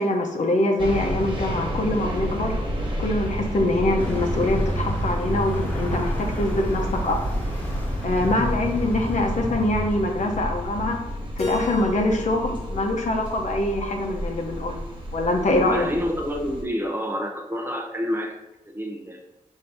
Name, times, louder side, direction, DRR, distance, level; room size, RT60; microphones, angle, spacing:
voice 1, 0.0-2.6 3.0-7.2 8.0-11.0 11.4-14.8 15.1-15.9, left 1 dB, 65° left, 2 dB, 0.7 m, -24 dB
sound 1, 0.8-16.6, equal, 40° right, 0.9 m, -31 dB
Vehicle, 4.0-10.4, equal, 15° left, 1.1 m, -29 dB
Keyboard (musical), 11.4-14.3, left 4 dB, 50° left, 1.3 m, -36 dB
voice 2, 15.6-18.4 18.7-19.2, equal, 15° right, 1 dB, 0.6 m, -28 dB
5.4 x 2.7 x 3.4 m, 0.92 s
wide cardioid pair, 150°, 13 cm